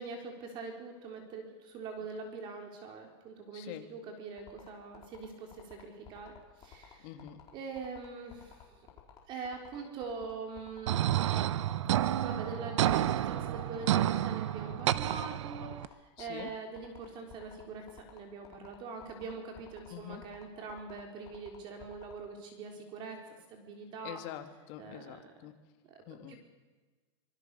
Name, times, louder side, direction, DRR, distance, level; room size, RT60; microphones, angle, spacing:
voice 1, 0.0-7.1 7.5-8.9 9.3-11.6 12.2-23.2 23.5-24.2 24.8-25.2 25.9-26.4, right 4 dB, 30° right, 3 dB, 3.9 m, -43 dB
voice 2, 3.5-3.9 7.0-7.4 16.2-16.5 19.9-20.2 24.0-25.5 26.1-26.3, left 12 dB, 40° left, 7 dB, 2.4 m, -45 dB
sound 1, 4.4-22.1, left 9 dB, 25° left, 4.4 m, -54 dB
sound 2, 10.9-15.9, right 12 dB, 75° right, 1.0 m, -30 dB
25.5 x 23.5 x 6.9 m, 1.3 s
supercardioid pair, 160°, 15 cm